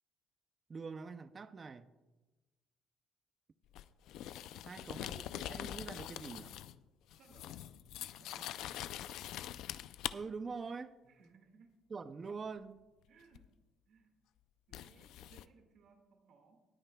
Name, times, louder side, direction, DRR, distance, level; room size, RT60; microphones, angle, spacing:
voice 1, 0.7-1.9 4.7-6.6 10.1-10.9 11.9-12.8, right 4 dB, 25° right, 13 dB, 0.4 m, -44 dB
sound 1, 3.7-6.8 7.1-10.1 13.3-13.5 14.7-15.4, left 12 dB, 75° left, 0.4 m, -44 dB
voice 2, 4.4-5.3 7.1-7.6 8.2-8.9 11.0-11.8 13.1-13.5 13.9-14.1 14.7-16.6, right 4 dB, 60° right, 4 dB, 1.8 m, -64 dB
20.0 x 9.1 x 2.2 m, 1.2 s
cardioid pair, 155°, 0 cm